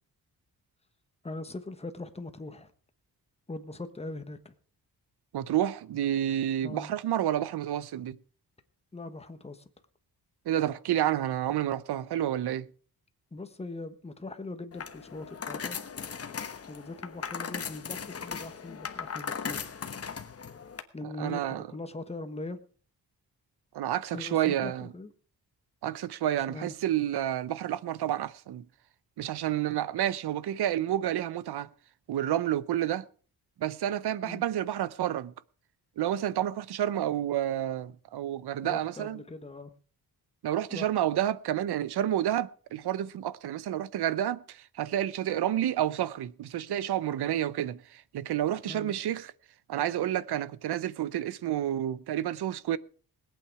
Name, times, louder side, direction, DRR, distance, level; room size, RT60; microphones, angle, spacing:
voice 1, 1.2-2.7 3.5-4.5 6.6-6.9 8.9-9.7 13.3-15.8 16.7-19.7 20.9-22.6 24.1-25.1 26.5-26.8 34.2-34.4 38.6-39.7 40.7-40.9 48.6-49.0, left 2 dB, 15° left, 1.3 m, -41 dB
voice 2, 5.3-8.2 10.5-12.7 21.0-21.6 23.7-24.9 25.8-28.7 29.2-31.7 32.1-33.1 33.6-35.3 36.0-39.2 40.4-49.3 49.7-52.8, right 11 dB, 90° right, 0.8 m, -30 dB
sound 1, 14.7-20.8, left 6 dB, 40° left, 1.1 m, -38 dB
20.5 x 8.7 x 4.8 m
wide cardioid pair, 145°, 38 cm